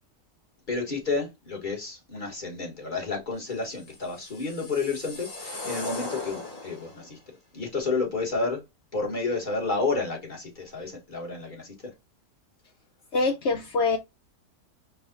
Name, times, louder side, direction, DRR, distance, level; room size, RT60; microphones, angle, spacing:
voice 1, 0.7-7.2 7.5-8.6 8.9-11.9, left 3 dB, 30° left, 1.4 m, -30 dB
sound 1, 3.9-7.1, left 3 dB, 50° left, 1.9 m, -38 dB
voice 2, 13.1-14.0, left 3 dB, 75° left, 0.6 m, -24 dB
4.7 x 2.4 x 3.9 m
omnidirectional pair, 1.8 m